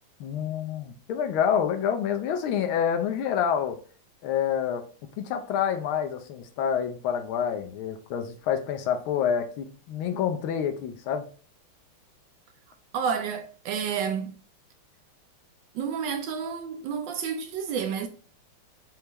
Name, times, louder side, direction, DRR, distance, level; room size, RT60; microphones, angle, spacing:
voice 1, 0.2-3.8 4.2-4.8 5.2-11.2, left 8 dB, 80° left, 1.5 m, -27 dB
voice 2, 12.9-14.3 15.7-18.1, right 7 dB, 75° right, 1.2 m, -30 dB
4.4 x 3.7 x 2.9 m
omnidirectional pair, 2.3 m